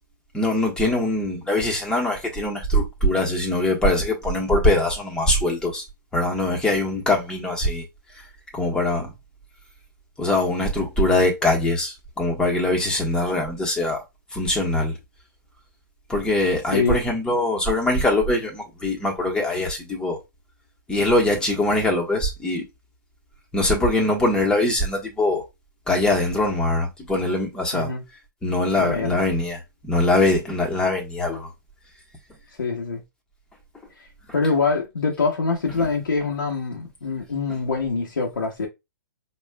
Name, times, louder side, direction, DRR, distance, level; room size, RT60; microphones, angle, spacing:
voice 1, 0.3-5.8 6.1-7.8 8.5-9.1 10.2-14.0 14.3-15.0 16.1-20.2 20.9-22.6 23.5-25.4 25.9-27.9 28.4-31.5 35.8-35.9, left 1 dB, 10° left, 1.1 m, -22 dB
voice 2, 27.7-28.0 28.7-29.2 32.6-33.0 34.3-38.7, left 4 dB, 90° left, 0.9 m, -24 dB
5.2 x 2.4 x 2.2 m
hypercardioid pair, 135°, 11 cm